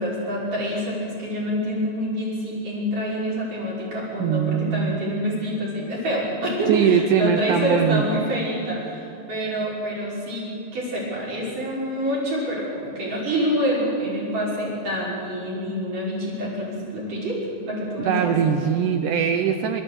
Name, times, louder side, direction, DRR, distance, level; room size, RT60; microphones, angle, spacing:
voice 1, 0.0-10.5 10.7-18.3, equal, 50° right, -4 dB, 7.1 m, -27 dB
voice 2, 4.2-5.0 6.7-8.0 18.0-19.8, right 8 dB, 85° right, 6 dB, 1.8 m, -21 dB
26.5 x 14.0 x 8.1 m, 2.7 s
omnidirectional pair, 4.8 m